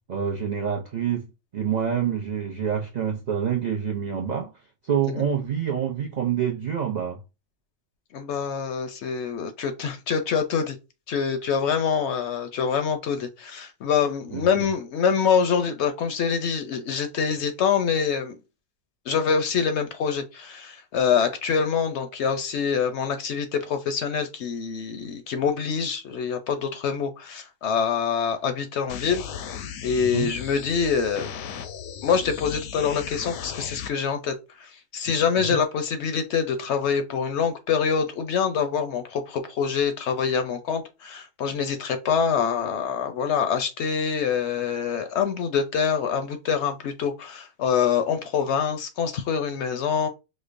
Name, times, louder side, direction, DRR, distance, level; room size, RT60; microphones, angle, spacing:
voice 1, 0.1-1.3 1.5-4.5 4.8-7.2 14.3-14.6 30.1-30.3 35.5-35.6, right 8 dB, 65° right, 0.4 m, -27 dB
voice 2, 8.1-10.8 11.1-18.4 19.1-29.2 29.8-31.3 32.0-50.1, left 6 dB, 65° left, 0.7 m, -25 dB
sound 1, 28.9-33.9, left 8 dB, 85° left, 1.0 m, -36 dB
5.0 x 2.1 x 2.5 m
omnidirectional pair, 1.4 m